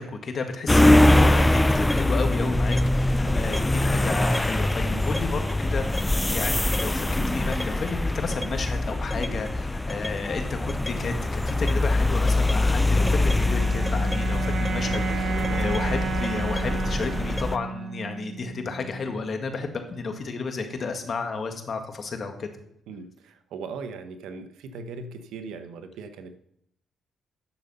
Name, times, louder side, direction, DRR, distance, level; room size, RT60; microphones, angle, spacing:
voice 1, 0.0-22.5, left 4 dB, 45° left, 5 dB, 1.7 m, -32 dB
sound 1, 0.7-17.6, left 1 dB, 10° left, 0.4 m, -23 dB
sound 2, 12.8-19.2, right 5 dB, 60° right, 1.7 m, -32 dB
voice 2, 22.9-26.4, right 4 dB, 85° right, 8 dB, 1.0 m, -39 dB
10.0 x 6.8 x 5.5 m, 0.74 s
cardioid pair, 90°, 0 cm